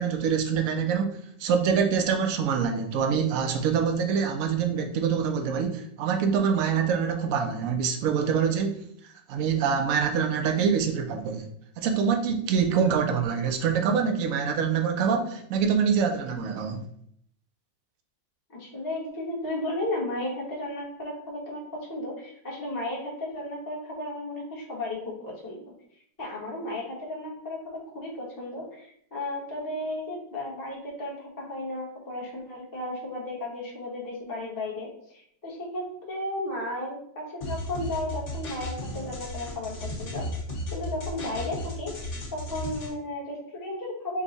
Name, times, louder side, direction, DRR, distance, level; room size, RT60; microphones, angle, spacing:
voice 1, 0.0-8.8 9.3-11.5 11.8-16.8, right 6 dB, 65° right, 5 dB, 0.9 m, -25 dB
voice 2, 18.5-25.6 26.2-40.3 40.7-41.9 42.3-44.2, left 1 dB, 15° left, -3 dB, 0.8 m, -34 dB
sound 1, 37.4-42.9, left 1 dB, 45° left, 1.5 m, -35 dB
5.4 x 2.2 x 3.9 m, 0.66 s
omnidirectional pair, 1.9 m